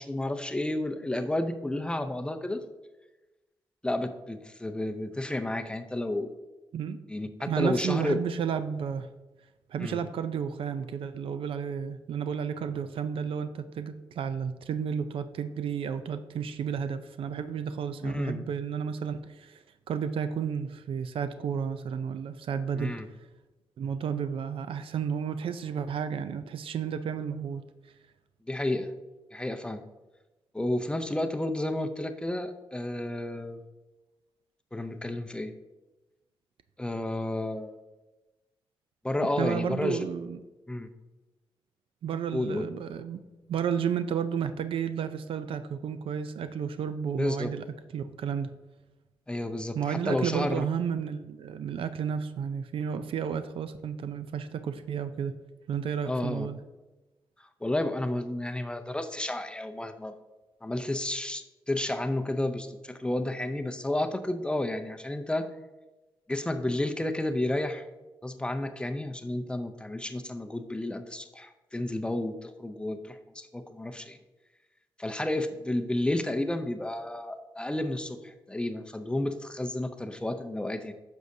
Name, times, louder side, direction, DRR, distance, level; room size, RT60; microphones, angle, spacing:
voice 1, 0.0-2.6 3.8-6.3 7.1-7.3 7.6-8.2 9.8-10.0 18.0-18.4 22.8-23.1 28.5-28.9 29.3-29.8 30.5-33.6 34.7-35.5 36.8-37.8 39.0-40.0 40.7-40.9 42.3-42.6 47.2-47.5 49.3-50.7 56.1-56.5 57.6-60.1 60.6-65.5 66.3-67.9 68.2-74.2 75.0-80.9, left 1 dB, 10° left, 8 dB, 0.5 m, -31 dB
voice 2, 7.5-9.1 9.7-23.0 23.8-27.6 39.4-40.4 42.0-43.2 43.5-47.6 47.9-48.5 49.7-55.3 55.7-56.6, right 7 dB, 80° right, 11 dB, 0.4 m, -32 dB
9.7 x 6.4 x 2.7 m, 1.1 s
cardioid pair, 100°, 9 cm